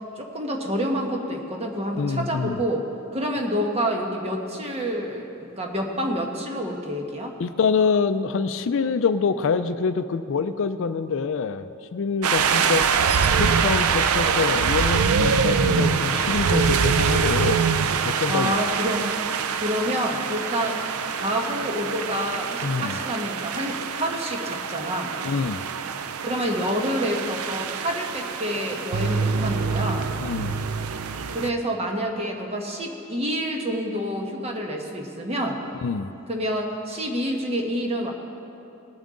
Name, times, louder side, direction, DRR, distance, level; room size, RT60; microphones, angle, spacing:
voice 1, 0.2-2.9 3.1-7.4 12.6-12.8 18.3-19.1 19.3-20.8 21.1-25.1 26.2-30.1 31.3-35.6 36.3-38.1, equal, 25° right, 1 dB, 1.3 m, -28 dB
voice 2, 2.0-2.6 7.4-17.7 18.0-18.6 22.6-23.0 25.2-25.6 30.2-30.6 35.8-36.1, left 5 dB, 60° left, 11 dB, 0.4 m, -25 dB
sound 1, 12.2-31.5, right 6 dB, 70° right, 0.4 m, -24 dB
19.5 x 8.9 x 3.8 m, 2.9 s
head